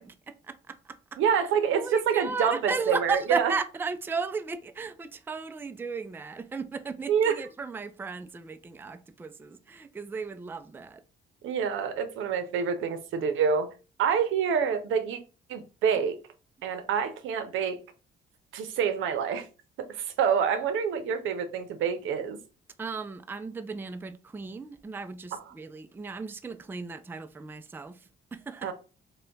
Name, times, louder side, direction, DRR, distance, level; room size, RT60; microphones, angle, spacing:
voice 1, 0.0-1.2 1.7-11.0 22.8-28.7, right 4 dB, 10° right, 0.3 m, -35 dB
voice 2, 1.2-3.5 7.1-7.4 11.4-13.7 14.0-15.2 15.5-16.2 16.6-17.8 18.5-19.5 19.8-22.4 28.6-28.7, right 7 dB, 80° right, 0.6 m, -27 dB
3.3 x 2.2 x 3.8 m
cardioid pair, 90°, 20 cm